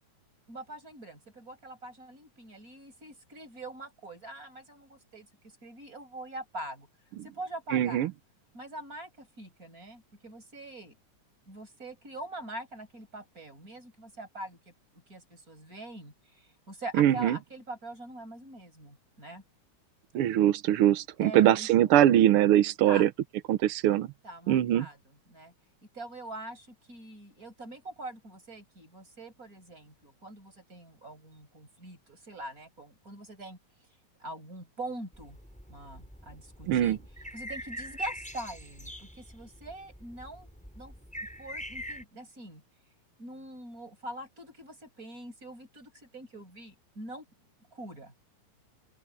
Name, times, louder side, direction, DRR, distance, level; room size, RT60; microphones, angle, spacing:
voice 1, 0.5-5.3 5.6-6.9 7.2-8.1 8.5-11.0 11.5-14.7 15.1-19.4 21.2-21.7 22.8-23.1 24.2-25.5 25.9-33.6 34.2-35.4 35.7-37.0 37.3-40.5 40.7-40.9 41.4-42.6 43.2-47.3 47.7-48.1, right 1 dB, 25° right, 7.8 m, -43 dB
voice 2, 7.7-8.1 17.0-17.4 20.1-23.1 23.5-24.1 24.5-24.9 36.7-37.0, right 12 dB, 80° right, 1.2 m, -22 dB
sound 1, 35.1-42.0, equal, ahead, 6.5 m, -43 dB
open air
omnidirectional pair, 3.6 m